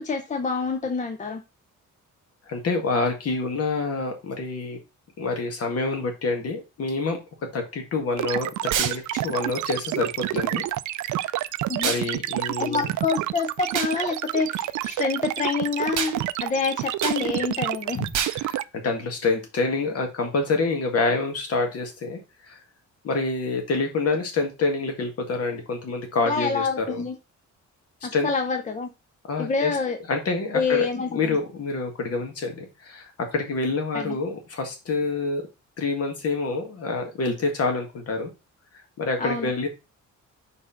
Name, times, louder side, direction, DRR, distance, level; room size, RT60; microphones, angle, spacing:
voice 1, 0.0-1.4 11.7-11.9 12.6-18.0 26.3-27.2 28.0-28.9 29.4-30.0 30.5-31.3 33.9-34.2 39.2-39.5, left 5 dB, 25° left, 6 dB, 0.6 m, -27 dB
voice 2, 2.5-4.8 5.2-7.2 7.5-8.5 8.8-10.6 11.0-11.4 11.8-12.9 17.9-22.6 23.0-27.0 28.1-28.3 29.3-29.8 30.1-30.9 31.1-35.4 35.8-38.3 39.0-39.7, left 3 dB, 50° left, 4 dB, 1.9 m, -27 dB
sound 1, 8.2-18.6, right 15 dB, 70° right, 0.5 m, -28 dB
sound 2, 8.7-9.0 11.8-12.1 13.7-13.9 16.0-16.2 17.0-17.2 18.1-18.4, right 8 dB, 90° right, 1.3 m, -26 dB
4.8 x 4.5 x 5.7 m, 0.28 s
cardioid pair, 175°, 31 cm